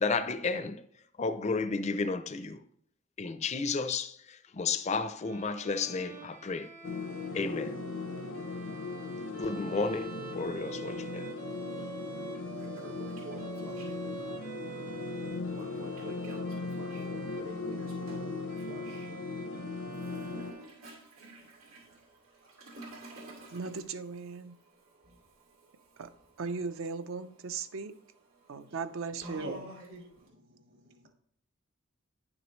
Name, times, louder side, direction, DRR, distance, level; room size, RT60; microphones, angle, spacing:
voice 1, 0.0-0.8 1.2-2.6 3.2-6.7 7.3-7.8 9.4-11.3, left 4 dB, 35° left, 0.4 m, -32 dB
Bowed string instrument, 5.2-21.2, right 5 dB, 40° right, 0.8 m, -47 dB
sound 1, 6.8-20.5, left 3 dB, 85° left, 0.8 m, -38 dB
Toilet flush, 11.8-11.9 12.3-14.3 15.5-19.1 19.9-30.3, right 1 dB, 90° right, 2.4 m, -50 dB
voice 2, 23.5-24.6 26.0-26.1 26.4-27.9 28.5-29.5, right 4 dB, 70° right, 0.5 m, -37 dB
voice 3, 30.2-31.1, right 2 dB, 55° right, 1.3 m, -43 dB
9.8 x 6.2 x 3.1 m
head